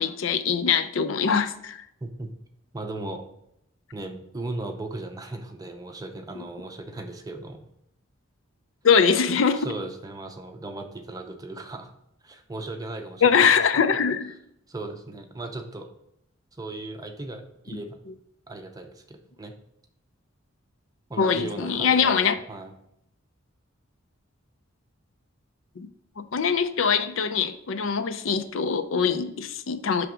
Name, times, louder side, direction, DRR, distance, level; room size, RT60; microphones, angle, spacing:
voice 1, 0.0-1.8 8.8-9.7 13.2-14.3 21.2-22.3 25.8-25.9 26.3-30.1, left 6 dB, 65° left, 9 dB, 0.5 m, -22 dB
voice 2, 2.0-2.3 2.7-3.2 3.9-7.6 9.6-11.9 12.2-13.8 14.7-15.9 16.6-18.0 18.5-19.6 21.1-22.7, right 2 dB, 15° right, 5 dB, 0.6 m, -37 dB
5.9 x 3.4 x 5.0 m, 0.77 s
head